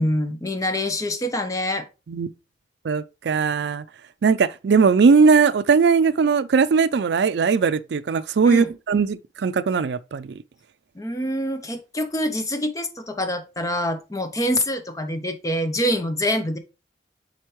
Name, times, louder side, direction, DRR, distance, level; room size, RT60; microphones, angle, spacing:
voice 1, 0.0-1.9 8.4-8.7 10.9-16.6, left 1 dB, 20° left, 0.8 m, -25 dB
voice 2, 2.8-3.8 4.2-10.4, right 5 dB, 70° right, 0.4 m, -19 dB
7.9 x 4.4 x 3.1 m
head